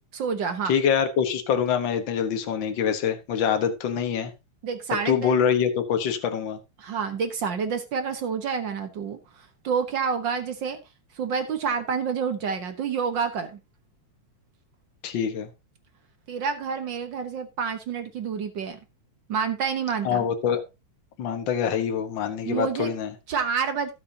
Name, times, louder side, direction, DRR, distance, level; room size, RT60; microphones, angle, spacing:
voice 1, 0.1-0.7 4.6-5.4 6.8-10.8 11.1-13.6 16.3-18.8 19.3-20.2 22.4-22.9 23.3-23.9, right 6 dB, 60° right, 1.2 m, -28 dB
voice 2, 0.6-4.3 4.9-6.6 15.0-15.5 20.0-20.6 21.2-23.1, left 7 dB, 50° left, 1.7 m, -25 dB
15.0 x 6.8 x 2.8 m
omnidirectional pair, 3.4 m